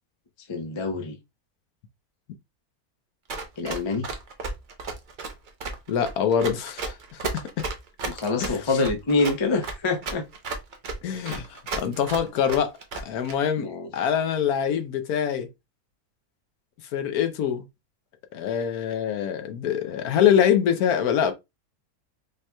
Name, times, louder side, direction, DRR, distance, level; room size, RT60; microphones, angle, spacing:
voice 1, 0.5-1.2 3.6-4.1 8.0-10.3 13.6-13.9, left 3 dB, 35° left, 0.4 m, -26 dB
Run, 3.3-13.3, right 3 dB, 45° right, 0.6 m, -33 dB
voice 2, 5.9-7.3 7.6-7.7 8.4-8.6 11.0-12.8 13.0-13.7 13.9-15.5 16.9-17.6 18.3-21.3, left 8 dB, 80° left, 1.2 m, -24 dB
5.3 x 2.9 x 2.2 m
omnidirectional pair, 1.6 m